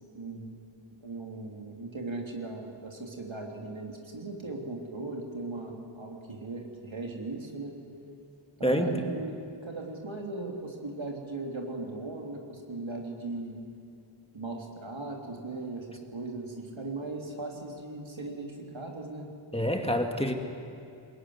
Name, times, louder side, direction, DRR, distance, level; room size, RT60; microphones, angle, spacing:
voice 1, 0.1-0.5 1.0-7.8 8.6-13.6 14.3-19.3, right 2 dB, 75° right, 1 dB, 3.4 m, -38 dB
voice 2, 8.6-9.0 19.5-20.3, equal, 10° left, 4 dB, 2.2 m, -27 dB
21.5 x 20.5 x 9.7 m, 2.6 s
wide cardioid pair, 55°, 47 cm